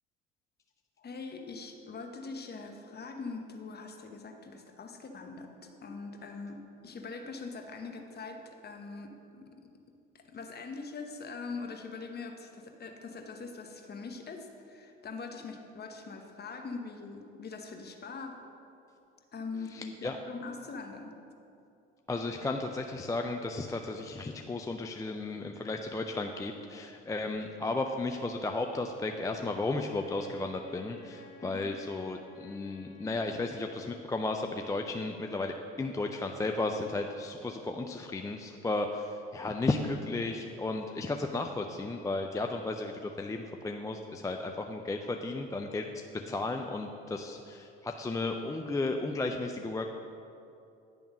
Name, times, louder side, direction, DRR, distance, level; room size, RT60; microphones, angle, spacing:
voice 1, 1.0-9.7 10.1-18.3 19.3-21.1 31.4-31.7, left 4 dB, 35° left, 4 dB, 1.0 m, -42 dB
voice 2, 19.7-20.2 22.1-45.9 46.3-49.9, left 2 dB, 10° left, 3 dB, 0.4 m, -34 dB
Wind instrument woodwind instrument, 29.8-34.2, left 3 dB, 90° left, 0.8 m, -53 dB
10.5 x 3.5 x 6.0 m, 2.7 s
hypercardioid pair, 70°, 29 cm